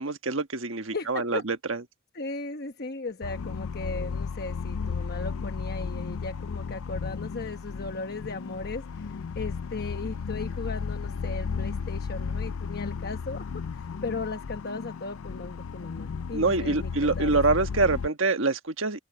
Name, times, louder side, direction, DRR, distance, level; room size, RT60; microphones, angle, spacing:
voice 1, 0.0-1.8 16.3-19.0, right 3 dB, 65° right, 1.4 m, -25 dB
voice 2, 0.9-1.4 2.1-16.9 17.2-17.7, left 3 dB, 50° left, 1.0 m, -37 dB
sound 1, 3.2-18.1, left 5 dB, 85° left, 0.5 m, -34 dB
head